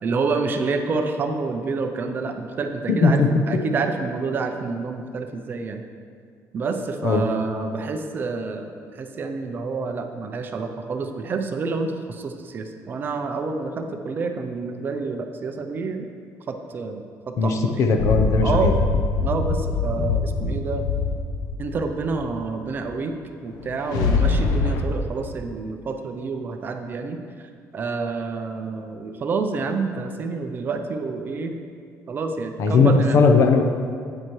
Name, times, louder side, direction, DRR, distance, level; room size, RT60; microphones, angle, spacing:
voice 1, 0.0-5.8 6.5-16.1 16.5-17.8 18.4-18.8 19.2-20.9 21.6-23.1 23.4-27.2 27.7-31.6 32.1-33.2, right 4 dB, 30° right, 5 dB, 0.5 m, -28 dB
voice 2, 2.9-3.4 7.0-7.2 17.4-18.7 32.6-33.6, left 4 dB, 50° left, 5 dB, 0.7 m, -18 dB
sound 1, 18.0-22.6 23.5-24.8, left 4 dB, 85° left, 0.7 m, -23 dB
9.5 x 8.6 x 3.2 m, 2.2 s
cardioid pair, 170°, 6 cm